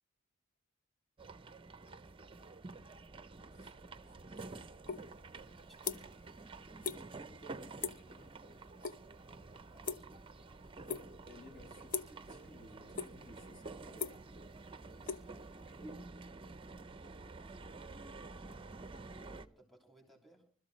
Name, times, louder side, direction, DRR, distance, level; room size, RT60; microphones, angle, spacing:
sound 1, 1.2-19.5, right 3 dB, 25° right, 0.7 m, -50 dB
voice 1, 3.4-4.7 7.2-8.6 11.2-14.3 15.7-16.1, left 1 dB, 55° left, 5.9 m, -57 dB
sound 2, 4.9-5.0 5.4-6.3 6.5-7.0 7.3-7.5 7.8-8.1 8.4-9.0 9.2-10.4 10.9-11.3 11.9-12.2 12.7-13.3 13.7-15.9, left 6 dB, 40° left, 0.8 m, -40 dB
voice 2, 19.0-20.4, right 1 dB, ahead, 3.3 m, -62 dB
25.0 x 13.5 x 3.2 m
head